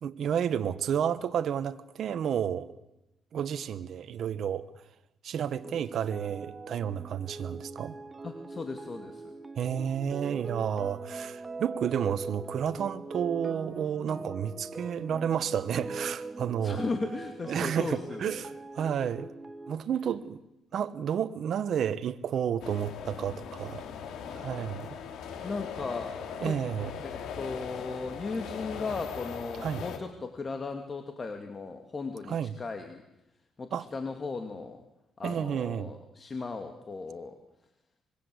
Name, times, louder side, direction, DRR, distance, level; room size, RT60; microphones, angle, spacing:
voice 1, 0.0-2.7 3.3-4.7 5.2-7.9 9.6-16.8 17.5-19.3 19.7-20.4 20.7-23.8 24.3-24.9 26.4-26.9 29.6-29.8 32.3-32.5 33.7-33.9 35.2-35.9, right 8 dB, 65° right, 1.2 m, -31 dB
sound 1, 5.6-19.8, right 3 dB, 20° right, 1.7 m, -42 dB
voice 2, 8.2-9.3 16.6-18.4 25.4-26.1 26.4-26.6 27.0-33.0 33.6-34.8 35.2-37.4, left 3 dB, 35° left, 2.6 m, -37 dB
sound 2, 22.6-30.0, left 7 dB, 80° left, 3.4 m, -40 dB
25.0 x 22.0 x 8.0 m
cardioid pair, 90°, 0 cm